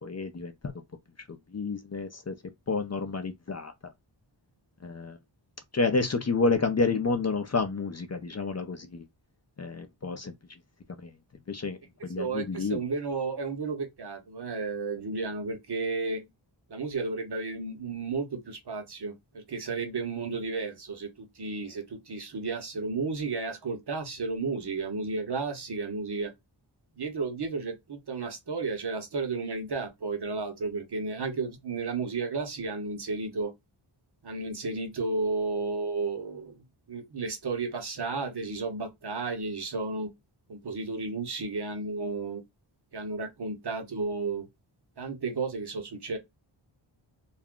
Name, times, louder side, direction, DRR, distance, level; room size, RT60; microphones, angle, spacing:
voice 1, 0.0-0.7 1.5-2.4 2.7-3.7 4.8-5.2 5.7-9.0 9.6-10.3 10.9-11.1 11.5-12.8, left 4 dB, 35° left, 0.5 m, -29 dB
voice 2, 12.2-16.3 16.7-26.3 27.0-33.5 34.2-36.6 36.9-40.1 40.5-42.4 42.9-44.5 45.0-46.2, right 4 dB, 55° right, 0.9 m, -33 dB
2.5 x 2.2 x 3.5 m
wide cardioid pair, 85°, 47 cm